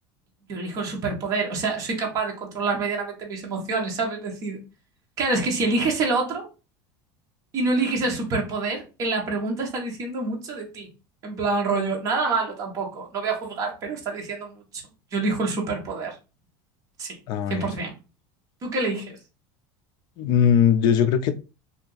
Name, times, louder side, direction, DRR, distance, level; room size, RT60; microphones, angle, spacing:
voice 1, 0.5-4.6 5.2-6.4 7.5-10.9 11.2-14.6 15.1-16.1 17.0-17.2 17.5-17.9 18.6-19.2, right 3 dB, 30° right, 1.0 m, -26 dB
voice 2, 17.3-17.7 20.2-21.3, left 8 dB, 45° left, 0.4 m, -20 dB
2.7 x 2.5 x 3.8 m
cardioid pair, 165°, 11 cm